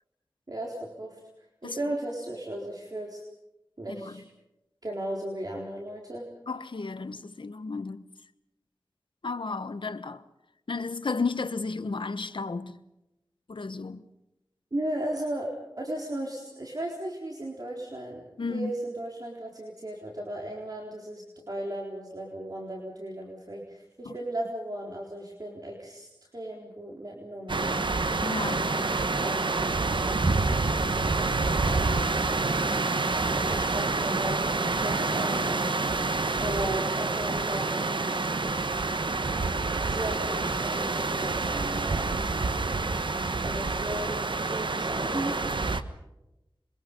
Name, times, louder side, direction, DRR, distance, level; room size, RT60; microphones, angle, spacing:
voice 1, 0.5-1.2 1.6-3.2 3.8-4.2 4.8-6.3 14.7-27.9 28.4-32.1 33.5-35.7 36.4-37.8 39.9-42.1 43.4-45.4, right 1 dB, 50° right, 4.1 m, -36 dB
voice 2, 6.5-8.1 9.2-10.2 10.7-12.7 13.5-14.0 18.4-18.7 24.0-24.2 28.2-28.7, left 4 dB, 85° left, 1.2 m, -33 dB
sound 1, 27.5-45.8, right 3 dB, 75° right, 1.3 m, -27 dB
27.0 x 23.5 x 5.4 m
wide cardioid pair, 45°, 8 cm